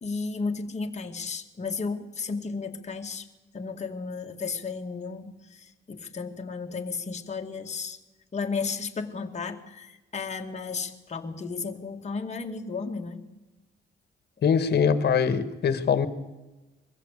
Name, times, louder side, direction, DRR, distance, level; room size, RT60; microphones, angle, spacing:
voice 1, 0.0-3.3 3.5-8.0 8.3-13.2 14.4-14.5, left 4 dB, 35° left, 3 dB, 2.2 m, -34 dB
voice 2, 14.4-16.1, left 6 dB, 55° left, 12 dB, 2.0 m, -23 dB
23.0 x 15.0 x 8.4 m, 1.1 s
cardioid pair, 90°, 20 cm